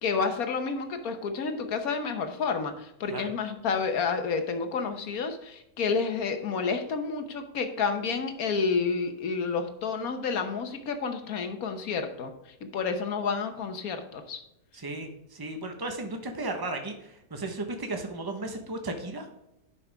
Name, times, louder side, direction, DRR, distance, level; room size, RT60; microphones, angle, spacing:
voice 1, 0.0-12.3 12.6-14.4, left 5 dB, 70° left, 7 dB, 1.5 m, -30 dB
voice 2, 14.7-19.3, right 2 dB, 15° right, 4 dB, 1.0 m, -35 dB
10.5 x 5.9 x 3.5 m, 0.83 s
omnidirectional pair, 1.6 m